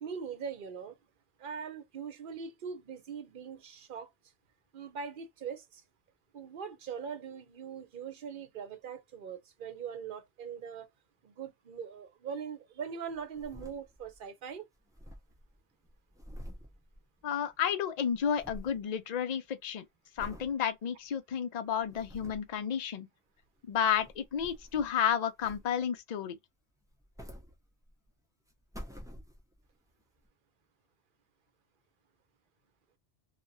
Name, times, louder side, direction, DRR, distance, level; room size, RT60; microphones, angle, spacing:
voice 1, 0.0-1.0 1.4-4.1 4.7-5.8 6.3-10.9 11.2-14.7, right 6 dB, 60° right, 0.8 m, -41 dB
sound 1, 13.1-14.3 14.5-14.6 14.8-17.6 17.8-18.8 19.3-19.6 20.2-20.5 21.1-21.2 21.7-22.6 23.6-25.0 25.4-26.0 26.8-28.1 28.5-29.7 30.2-30.3, equal, 5° right, 0.4 m, -49 dB
voice 2, 17.2-19.8 20.2-23.1 23.7-26.4, left 8 dB, 50° left, 0.6 m, -31 dB
2.8 x 2.3 x 2.6 m
omnidirectional pair, 1.1 m